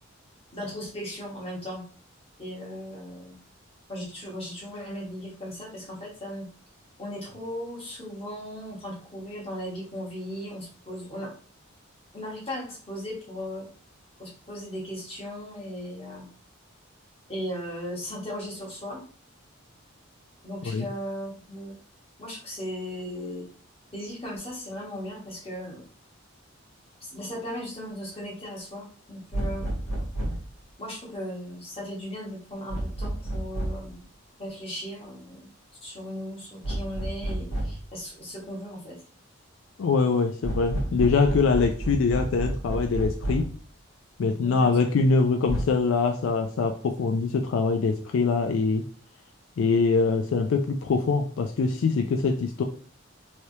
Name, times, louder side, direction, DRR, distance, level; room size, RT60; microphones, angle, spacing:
voice 1, 0.5-1.8 2.4-3.4 3.9-6.5 7.0-11.3 12.1-13.7 14.2-16.3 17.3-19.0 20.4-21.7 22.2-23.5 23.9-25.8 27.0-30.0 30.8-34.0 34.4-35.5 35.8-39.0 44.4-44.8, equal, 25° left, -4 dB, 1.2 m, -37 dB
sound 1, 29.3-30.5 32.7-33.9 36.6-37.9 40.4-43.6 45.5-45.6, right 1 dB, 90° left, 1.3 m, -30 dB
voice 2, 39.8-43.5 44.2-48.8 49.6-52.6, left 4 dB, 70° left, 5 dB, 0.3 m, -23 dB
3.3 x 3.0 x 2.7 m, 0.43 s
head